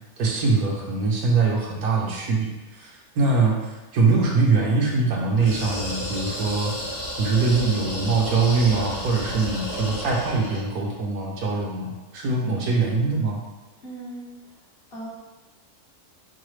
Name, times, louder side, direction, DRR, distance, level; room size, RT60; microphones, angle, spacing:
voice 1, 0.2-13.4, right 4 dB, 75° right, -1 dB, 1.1 m, -23 dB
sound 1, 5.3-10.7, equal, 85° left, 2.3 m, -32 dB
voice 2, 13.8-14.6 14.9-15.1, right 1 dB, 45° left, -8 dB, 1.2 m, -39 dB
4.7 x 2.2 x 3.1 m, 1.1 s
omnidirectional pair, 1.6 m